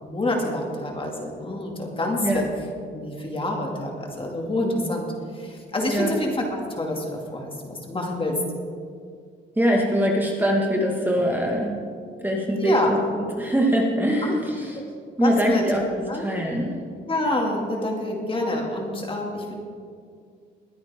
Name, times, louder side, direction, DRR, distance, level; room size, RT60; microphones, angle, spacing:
voice 1, 0.0-2.5 2.9-5.1 5.3-8.4 12.6-13.0 14.2-14.3 15.2-15.6 16.1-16.2 17.1-19.6, left 1 dB, 25° left, 1 dB, 2.4 m, -27 dB
voice 2, 9.5-11.8 12.2-14.8 15.2-15.8 16.1-16.7, equal, 10° right, -1 dB, 1.8 m, -23 dB
21.5 x 9.3 x 3.7 m, 2.2 s
cardioid pair, 90°, 20 cm